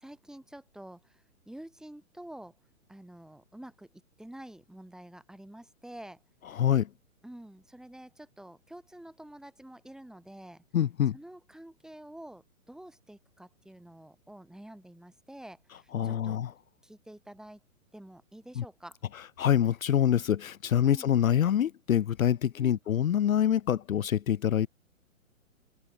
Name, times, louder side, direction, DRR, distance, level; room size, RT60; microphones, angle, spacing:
voice 1, 0.0-2.5 2.9-6.2 7.2-10.6 11.1-16.4 16.8-17.6 17.9-19.0 20.8-21.1 22.6-22.8, right 1 dB, ahead, 2.5 m, -48 dB
voice 2, 6.5-6.9 10.7-11.2 15.9-16.5 18.6-18.7 19.4-24.7, left 10 dB, 75° left, 0.6 m, -25 dB
open air
figure-of-eight pair, 125°, 41 cm